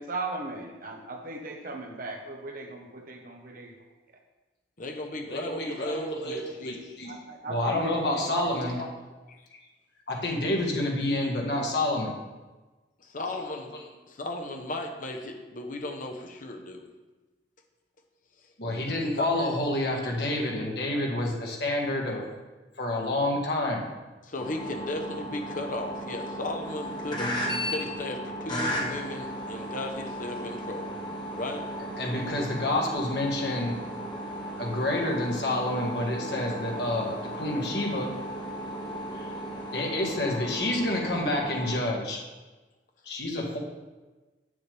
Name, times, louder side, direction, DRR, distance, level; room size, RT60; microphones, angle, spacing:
voice 1, 0.0-3.7 7.0-8.8 19.4-19.6, right 2 dB, 50° right, 2 dB, 1.1 m, -37 dB
voice 2, 4.8-6.8 9.3-9.4 13.0-13.8 14.1-16.9 19.2-19.3 24.2-27.4 27.6-31.0 31.3-31.6, left 2 dB, 50° left, 3 dB, 1.0 m, -35 dB
voice 3, 5.3-7.1 7.5-8.9 10.1-12.1 13.4-13.5 18.6-22.2 22.8-23.8 32.0-33.7 34.6-38.1 39.1-39.3 39.7-42.2 43.0-43.6, left 1 dB, 65° left, -1 dB, 1.7 m, -28 dB
sound 1, 24.4-41.8, equal, 25° left, 1.4 m, -35 dB
8.3 x 7.1 x 3.4 m, 1.2 s
head